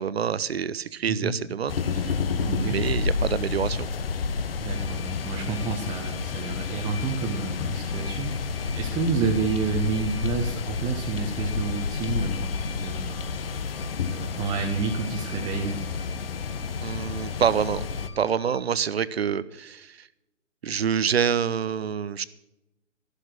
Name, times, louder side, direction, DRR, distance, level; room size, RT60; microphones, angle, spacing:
voice 1, 0.0-2.1 2.4-3.9 16.8-17.9 18.2-20.1 20.6-22.2, right 7 dB, 50° right, 17 dB, 0.9 m, -27 dB
sound 1, 1.7-18.1, left 5 dB, 45° left, 1.3 m, -30 dB
voice 2, 2.4-2.7 4.6-13.3 13.7-15.8, right 4 dB, 10° right, 1 dB, 1.1 m, -30 dB
sound 2, 4.7-18.6, left 6 dB, 20° left, 0.5 m, -47 dB
13.5 x 12.0 x 6.0 m, 0.92 s
figure-of-eight pair, 130°, 39 cm